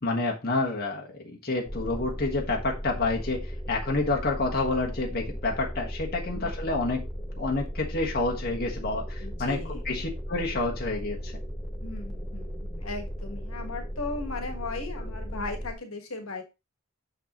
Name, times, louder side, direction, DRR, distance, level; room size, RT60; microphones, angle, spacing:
voice 1, 0.0-7.1 7.4-9.6 9.8-11.3 15.0-15.1, left 2 dB, 45° left, 0 dB, 1.4 m, -29 dB
sound 1, 1.7-15.7, equal, ahead, 0.7 m, -36 dB
voice 2, 9.2-9.8 11.8-16.4, left 3 dB, 75° left, 6 dB, 1.5 m, -37 dB
6.6 x 6.4 x 3.0 m, 0.25 s
head